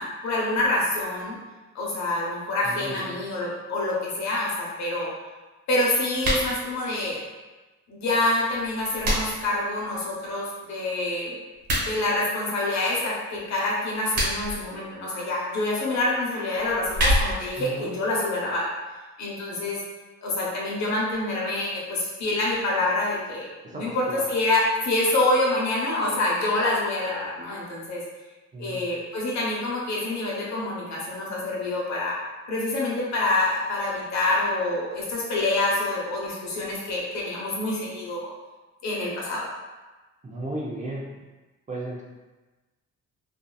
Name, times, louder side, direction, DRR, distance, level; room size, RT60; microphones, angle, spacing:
voice 1, 0.0-1.4 1.7-5.1 5.7-7.2 7.9-11.4 11.8-18.7 19.2-19.8 20.2-28.0 28.6-32.2 32.5-38.3 38.8-39.5, left 2 dB, 65° left, -4 dB, 0.9 m, -26 dB
voice 2, 2.6-3.2 17.6-17.9 23.7-24.3 28.5-28.8 40.2-41.0 41.7-42.0, right 1 dB, 25° right, -3 dB, 0.5 m, -34 dB
sound 1, 6.1-6.5 8.5-9.5 11.5-11.9 13.9-14.6 16.6-17.5, equal, 55° right, 1.5 m, -26 dB
2.7 x 2.3 x 2.2 m, 1.2 s
cardioid pair, 90°, 30 cm